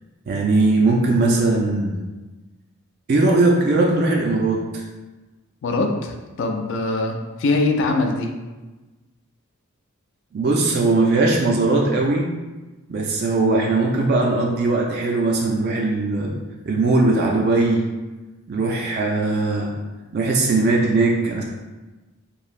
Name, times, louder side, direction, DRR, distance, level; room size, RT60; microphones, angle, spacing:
voice 1, 0.3-2.0 3.1-4.8 10.3-12.3 12.9-16.3 16.7-17.8 18.5-19.7 20.1-21.4, right 2 dB, 45° right, -1 dB, 0.3 m, -19 dB
voice 2, 5.6-8.3, left 3 dB, 55° left, 3 dB, 0.3 m, -22 dB
3.1 x 2.7 x 2.4 m, 1.2 s
head